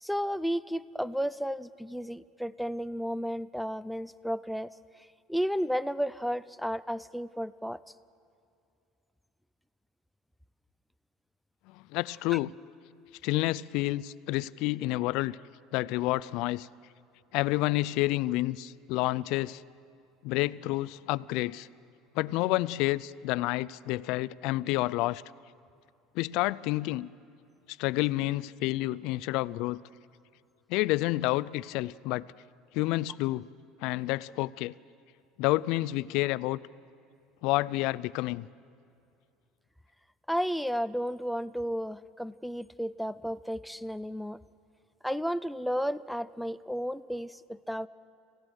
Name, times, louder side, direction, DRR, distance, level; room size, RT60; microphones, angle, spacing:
voice 1, 0.0-4.7 5.3-7.8 12.3-12.4 40.3-44.4 45.0-47.9, equal, ahead, 14 dB, 0.4 m, -33 dB
voice 2, 11.9-12.5 13.2-15.4 15.7-16.7 17.3-19.6 20.2-21.7 22.2-25.2 26.2-27.1 27.8-29.8 30.7-32.2 32.7-33.5 33.8-34.7 35.4-36.6 37.4-38.5, left 18 dB, 65° left, 19 dB, 0.4 m, -29 dB
27.5 x 16.0 x 6.3 m, 2.6 s
cardioid pair, 140°, 0 cm